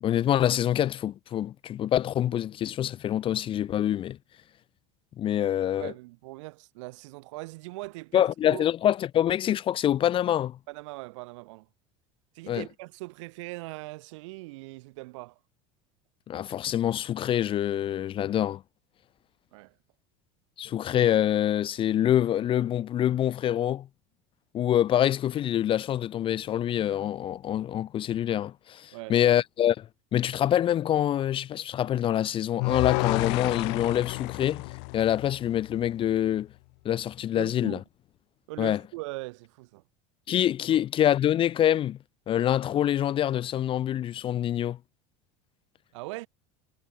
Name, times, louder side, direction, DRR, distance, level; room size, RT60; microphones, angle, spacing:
voice 1, 0.0-4.2 5.2-5.9 8.1-10.6 12.5-12.6 16.3-18.6 20.6-23.9 24.5-29.9 30.1-34.6 34.9-36.5 36.8-37.8 38.6-38.8 40.3-42.0 42.3-44.8, left 11 dB, 35° left, 0.6 m, -25 dB
voice 2, 5.8-8.6 10.7-11.7 12.3-15.4 19.5-19.7 28.9-29.2 37.3-37.8 38.5-39.8 45.9-46.3, right 23 dB, 80° right, 6.7 m, -40 dB
sound 1, 32.6-35.8, left 36 dB, 70° left, 3.8 m, -30 dB
supercardioid pair, 115°, 15 cm